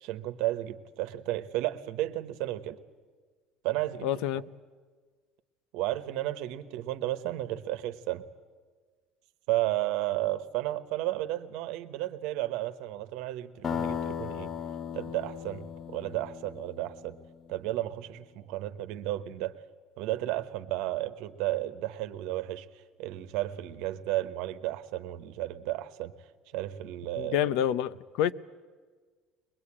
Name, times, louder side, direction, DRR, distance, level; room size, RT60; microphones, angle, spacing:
voice 1, 0.0-2.8 3.6-4.1 5.7-8.2 9.5-14.5 14.9-17.2 17.5-19.5 20.0-22.7 23.0-26.1 26.5-27.4, right 15 dB, 75° right, 1.1 m, -33 dB
voice 2, 4.0-4.4 27.2-28.3, left 10 dB, 75° left, 0.7 m, -28 dB
sound 1, 13.6-17.4, left 8 dB, 25° left, 0.6 m, -36 dB
22.0 x 21.5 x 8.7 m
cardioid pair, 160°, 0 cm